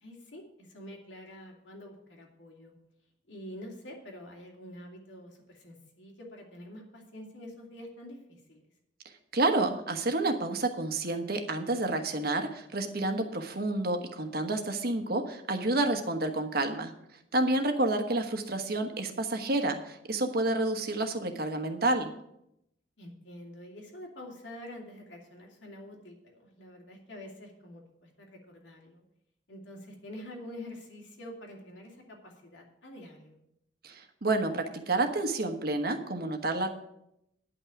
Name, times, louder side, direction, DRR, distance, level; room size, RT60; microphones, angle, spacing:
voice 1, 0.0-2.7 3.3-8.6 23.0-29.0 29.5-33.4, left 1 dB, 80° left, 0 dB, 2.7 m, -47 dB
voice 2, 9.3-16.9 17.3-22.1 33.8-36.7, right 2 dB, 55° right, 6 dB, 1.3 m, -29 dB
10.0 x 5.9 x 8.4 m, 0.81 s
head